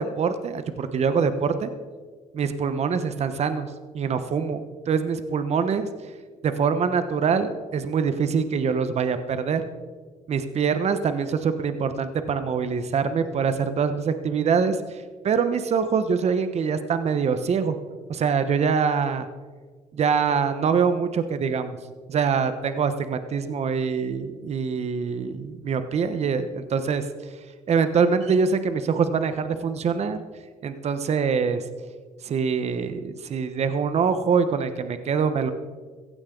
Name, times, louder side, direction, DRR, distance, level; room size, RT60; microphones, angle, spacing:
voice 1, 0.0-1.7 2.3-3.7 3.9-5.9 6.4-9.6 10.3-17.8 18.1-19.3 19.9-21.8 22.1-27.0 27.7-30.2 30.6-31.6 32.2-35.5, right 6 dB, 50° right, 10 dB, 1.1 m, -24 dB
15.5 x 15.5 x 3.9 m, 1.5 s
cardioid pair, 90°, 14 cm